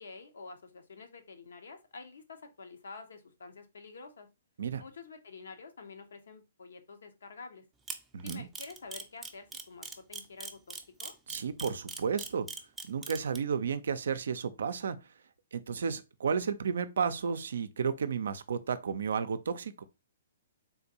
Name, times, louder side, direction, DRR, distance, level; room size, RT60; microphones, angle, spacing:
voice 1, 0.0-4.3 4.8-7.6 8.2-10.7 11.0-11.1, left 4 dB, 70° left, 0.7 m, -48 dB
Camera, 7.9-13.4, right 4 dB, 10° right, 0.5 m, -40 dB
voice 2, 8.1-8.5 11.3-12.5 12.9-15.1 15.5-19.8, right 6 dB, 70° right, 0.4 m, -32 dB
3.6 x 2.5 x 2.8 m
hypercardioid pair, 125°, 0 cm